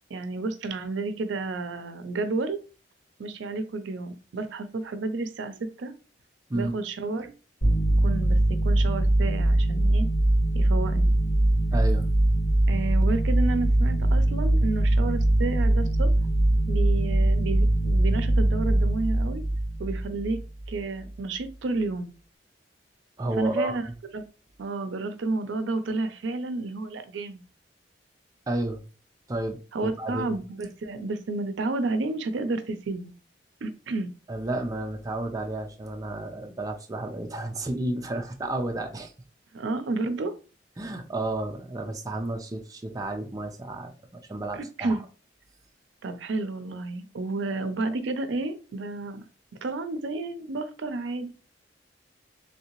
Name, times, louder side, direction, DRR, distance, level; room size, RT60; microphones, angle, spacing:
voice 1, 0.1-2.6 3.2-5.9 6.5-7.3 8.0-8.4 8.6-10.1 10.5-11.1 12.7-16.1 16.7-19.4 19.8-20.4 20.7-22.1 23.4-23.9 24.1-24.2 24.6-27.4 29.7-33.1 33.6-34.1 39.5-40.3 44.5-45.0 46.0-49.2 49.6-51.3, right 3 dB, 85° right, 10 dB, 0.5 m, -31 dB
sound 1, 7.6-20.8, right 1 dB, 75° left, 1.8 m, -22 dB
voice 2, 11.7-12.1 23.2-23.8 28.5-28.8 29.3-30.4 34.3-39.1 40.8-45.0, right 1 dB, 20° right, 3 dB, 0.4 m, -31 dB
3.3 x 2.7 x 2.9 m, 0.35 s
head